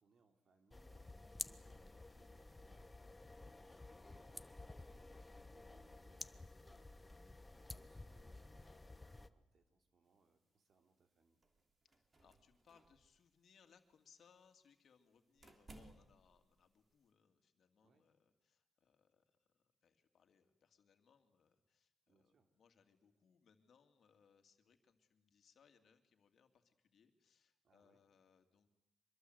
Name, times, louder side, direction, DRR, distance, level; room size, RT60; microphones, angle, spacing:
voice 1, 0.0-11.4 17.8-18.0 22.1-22.5 27.6-28.0, right 4 dB, 60° right, 5 dB, 3.1 m, -75 dB
sound 1, 0.7-9.3, left 2 dB, 15° left, 0.9 m, -53 dB
sound 2, 10.1-17.1, right 2 dB, 35° right, 3.0 m, -65 dB
voice 2, 11.8-28.7, left 6 dB, 65° left, 6 dB, 2.4 m, -72 dB
24.5 x 22.0 x 8.0 m, 0.89 s
cardioid pair, 95°, 0 cm